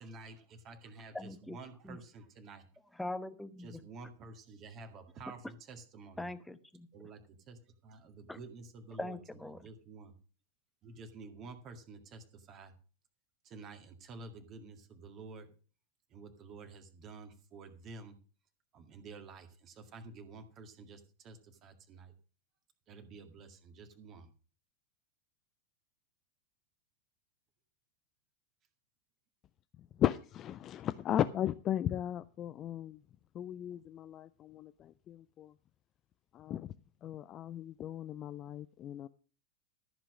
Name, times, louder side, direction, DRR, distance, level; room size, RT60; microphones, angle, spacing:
voice 1, 0.0-2.7 3.6-6.3 6.9-10.1 10.8-12.7 13.4-15.5 16.1-18.2 18.7-22.1 22.9-24.3, right 4 dB, 35° right, 2.0 m, -50 dB
voice 2, 1.1-1.6 1.8-2.0 3.0-3.8 6.2-6.9 8.3-8.4 9.0-9.6, left 2 dB, 5° left, 1.0 m, -41 dB
voice 3, 30.0-33.0 33.3-35.5 36.3-36.7 37.0-39.1, left 11 dB, 30° left, 0.5 m, -36 dB
14.0 x 6.1 x 6.2 m
figure-of-eight pair, 90°, 0 cm